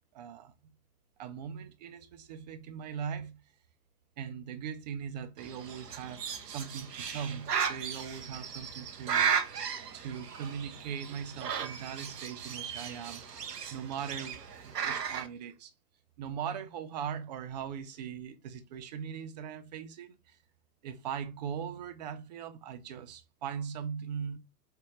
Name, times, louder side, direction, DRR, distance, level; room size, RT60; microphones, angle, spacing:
voice 1, 0.1-0.5 1.2-3.4 4.2-9.6 9.9-13.2 13.7-15.7 16.2-20.4 20.8-24.4, right 7 dB, 30° right, 0.5 m, -40 dB
Bird, 5.4-15.3, right 7 dB, 80° right, 0.7 m, -35 dB
5.1 x 2.2 x 3.0 m
figure-of-eight pair, 105°, 48 cm